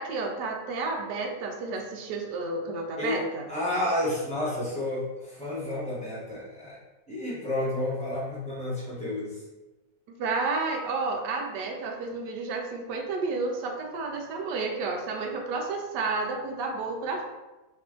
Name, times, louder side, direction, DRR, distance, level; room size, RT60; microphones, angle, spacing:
voice 1, 0.0-3.4 10.2-17.2, right 3 dB, 75° right, 2 dB, 1.1 m, -31 dB
voice 2, 3.5-6.8 7.1-9.4, left 1 dB, 5° left, -9 dB, 0.8 m, -30 dB
3.2 x 2.5 x 3.6 m, 1.1 s
omnidirectional pair, 2.0 m